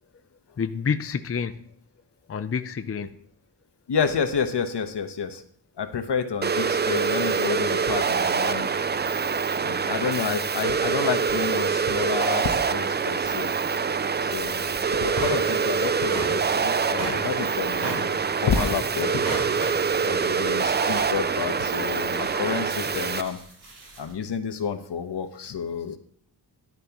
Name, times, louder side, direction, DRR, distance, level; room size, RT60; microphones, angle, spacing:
voice 1, 0.6-1.7 2.3-3.1 20.0-20.6, left 6 dB, 35° left, 10 dB, 0.5 m, -29 dB
voice 2, 3.9-5.4 5.8-8.7 9.6-13.5 14.2-14.7 15.0-18.1 18.4-19.2 20.0-23.4 24.0-26.0, left 6 dB, 75° left, 8 dB, 1.2 m, -29 dB
sound 1, 6.4-23.2, right 5 dB, 25° right, 0.3 m, -25 dB
sound 2, 15.1-24.1, right 2 dB, 70° right, 3.3 m, -38 dB
11.5 x 10.5 x 3.0 m, 0.62 s
wide cardioid pair, 135°, 41 cm